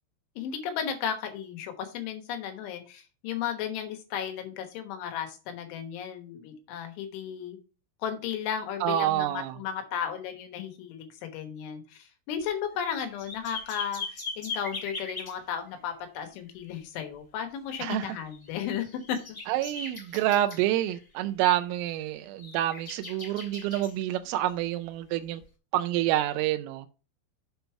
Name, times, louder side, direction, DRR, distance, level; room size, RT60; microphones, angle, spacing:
voice 1, 0.4-7.6 8.0-19.4, left 8 dB, 75° left, 3.5 m, -34 dB
voice 2, 8.8-9.5 17.8-18.1 19.5-25.4 25.7-27.0, right 13 dB, 85° right, 3.2 m, -28 dB
sound 1, 12.4-12.5 12.8-15.4 18.3-21.2 21.5-21.8 22.2-23.9 25.4-25.5, left 3 dB, 20° left, 1.5 m, -40 dB
8.0 x 5.3 x 4.5 m
omnidirectional pair, 5.8 m